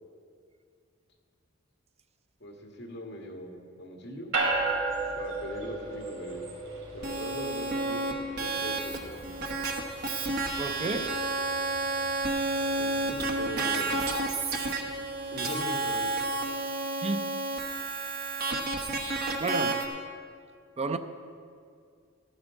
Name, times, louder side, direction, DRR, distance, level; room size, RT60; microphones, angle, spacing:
voice 1, 2.4-4.3 5.1-6.5 6.9-9.3 12.8-14.2 15.2-16.1, equal, 60° left, 1.8 m, -40 dB
sound 1, 4.3-15.9, right 3 dB, 85° right, 3.6 m, -37 dB
sound 2, 7.0-19.9, right 2 dB, 55° right, 1.2 m, -31 dB
voice 2, 10.6-11.3 17.0-17.4 19.4-20.0 20.8-21.0, right 3 dB, 30° right, 0.5 m, -32 dB
13.0 x 12.5 x 3.8 m
head